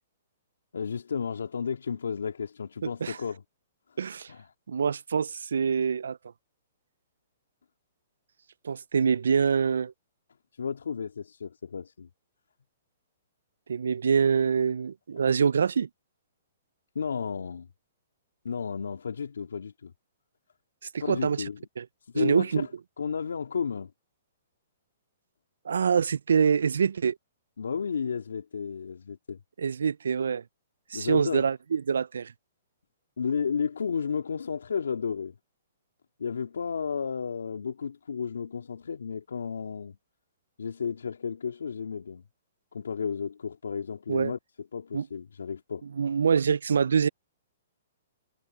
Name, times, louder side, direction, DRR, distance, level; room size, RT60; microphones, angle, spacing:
voice 1, 0.7-3.4 4.3-4.5 10.6-12.1 16.9-17.7 18.4-19.9 21.0-21.6 22.1-22.7 23.0-23.9 27.6-29.4 30.9-31.5 33.2-35.3 36.2-40.0 40.6-42.2 42.7-44.4 44.7-45.8, left 6 dB, 85° left, 3.1 m, -32 dB
voice 2, 2.8-3.2 4.0-4.3 4.7-6.2 8.6-9.9 13.7-15.9 20.9-21.4 21.8-21.9 22.1-22.7 25.7-27.2 29.6-30.4 30.9-32.3 44.1-44.3 44.9-45.1 45.8-47.1, right 6 dB, 85° right, 0.3 m, -25 dB
hypercardioid pair, 140°, 0 cm